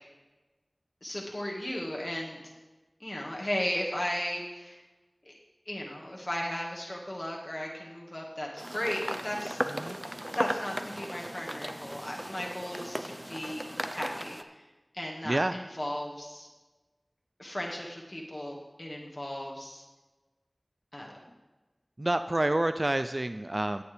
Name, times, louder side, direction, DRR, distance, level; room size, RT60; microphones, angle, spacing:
voice 1, 1.0-2.4 3.0-4.8 5.3-5.4 5.7-9.6 9.9-13.6 13.9-14.4 14.9-16.5 17.4-19.8 20.9-21.2, left 1 dB, 45° left, -2 dB, 1.7 m, -36 dB
sound 1, 8.6-14.4, equal, 20° right, 0.7 m, -36 dB
voice 2, 9.7-10.0 15.2-15.6 22.0-23.8, right 1 dB, 50° right, 10 dB, 0.4 m, -28 dB
17.5 x 7.2 x 3.4 m, 1.2 s
wide cardioid pair, 45°, 0 cm